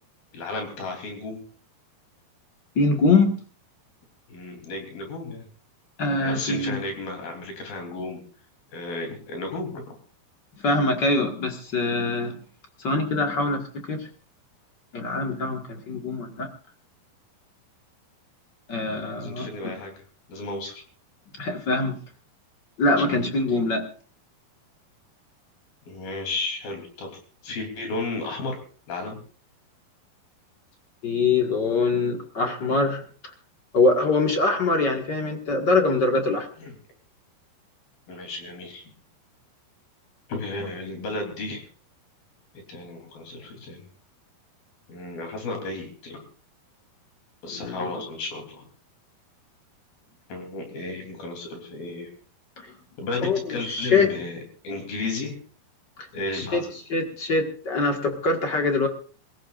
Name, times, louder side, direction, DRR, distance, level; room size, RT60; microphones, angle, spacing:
voice 1, 0.3-1.4 4.3-5.5 6.2-8.2 8.7-9.8 19.2-19.9 20.3-20.8 23.0-23.1 25.9-27.2 27.4-28.6 28.9-29.2 36.6-36.7 38.1-38.8 40.3-41.6 42.7-43.9 44.9-46.2 47.4-48.7 50.3-52.1 53.0-54.4 54.6-55.4 56.1-56.7, left 2 dB, 65° left, 3 dB, 5.1 m, -33 dB
voice 2, 2.7-3.3 6.0-6.8 10.6-12.3 12.8-14.1 14.9-16.5 18.7-19.7 21.4-22.0 22.8-23.8 31.0-33.0 33.7-36.5 47.5-47.9 53.2-54.1 56.3-56.6 56.9-58.9, left 3 dB, 45° left, 3 dB, 1.5 m, -23 dB
28.0 x 15.5 x 2.5 m, 0.41 s
omnidirectional pair, 4.5 m